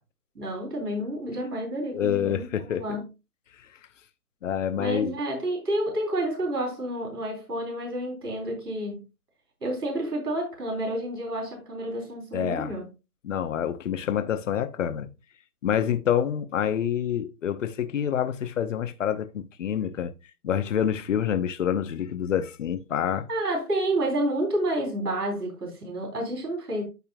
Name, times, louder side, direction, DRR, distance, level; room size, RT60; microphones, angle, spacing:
voice 1, 0.4-3.0 4.8-9.0 9.6-12.9 23.3-26.8, right 1 dB, 85° right, 3.7 m, -29 dB
voice 2, 1.9-2.8 4.4-5.1 12.3-12.8 13.2-15.1 15.6-20.1 20.4-23.3, left 9 dB, 50° left, 1.1 m, -27 dB
13.0 x 4.3 x 2.3 m
hypercardioid pair, 145°, 46 cm